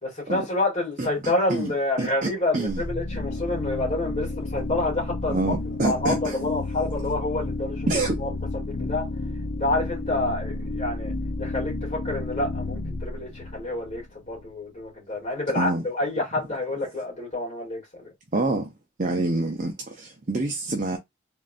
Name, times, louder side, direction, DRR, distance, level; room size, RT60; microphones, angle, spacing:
voice 1, 0.0-5.5 5.8-7.9 8.2-8.3 8.6-9.1 9.5-11.1 11.4-18.1, left 2 dB, 30° left, 2.6 m, -28 dB
voice 2, 1.0-1.7 2.0-2.8 5.3-6.4 7.9-8.2 15.6-15.8 18.3-18.7 19.0-21.0, right 2 dB, 40° right, 0.7 m, -27 dB
sound 1, 2.7-14.4, left 2 dB, 60° left, 0.7 m, -31 dB
3.8 x 3.8 x 2.5 m
head